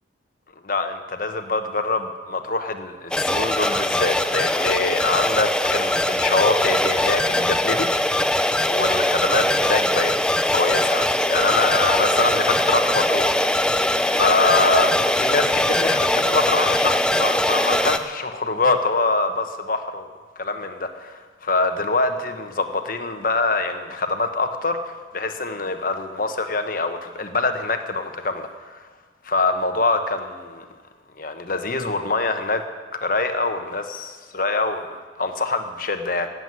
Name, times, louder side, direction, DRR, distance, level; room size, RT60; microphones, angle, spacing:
voice 1, 0.6-7.9 8.2-10.1 10.5-13.7 14.1-20.1 20.4-28.8 29.2-30.6 31.2-32.6 32.9-36.3, left 3 dB, 50° left, 7 dB, 1.1 m, -24 dB
sound 1, 3.1-18.0, left 1 dB, 5° left, 0.5 m, -21 dB
17.0 x 8.0 x 9.7 m, 1.5 s
head